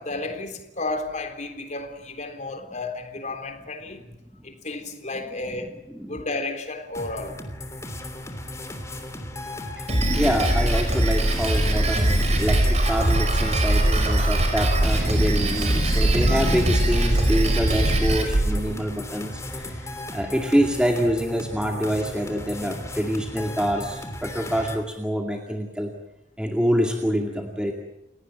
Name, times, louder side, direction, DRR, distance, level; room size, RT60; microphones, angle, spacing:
voice 1, 0.0-4.0 4.4-5.7 6.1-7.4, left 2 dB, 40° left, 3.6 m, -32 dB
voice 2, 5.1-6.2 9.7-9.9 10.2-25.9 26.4-27.7, equal, 5° right, 2.3 m, -26 dB
sound 1, 6.9-24.8, left 1 dB, 15° left, 3.2 m, -36 dB
Drum kit, 9.9-18.2, right 1 dB, 40° right, 5.4 m, -22 dB
sound 2, 12.0-18.8, right 2 dB, 55° right, 0.8 m, -27 dB
30.0 x 18.0 x 9.0 m
head